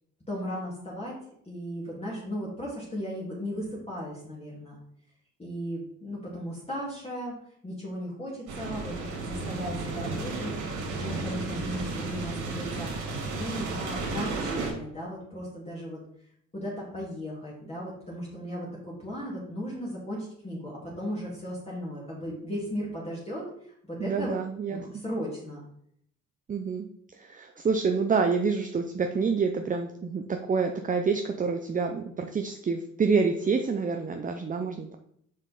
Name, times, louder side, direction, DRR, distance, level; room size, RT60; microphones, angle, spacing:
voice 1, 0.3-1.2 1.4-4.8 5.4-7.4 7.6-12.9 13.3-16.0 16.5-24.4 24.7-25.6, equal, 20° left, -5 dB, 2.2 m, -36 dB
sound 1, 8.5-14.7, right 3 dB, 90° right, 2.0 m, -33 dB
voice 2, 24.0-24.8 26.5-26.9 27.1-35.0, right 5 dB, 25° right, 5 dB, 0.6 m, -27 dB
5.6 x 5.2 x 4.0 m, 0.69 s
cardioid pair, 90°, 30 cm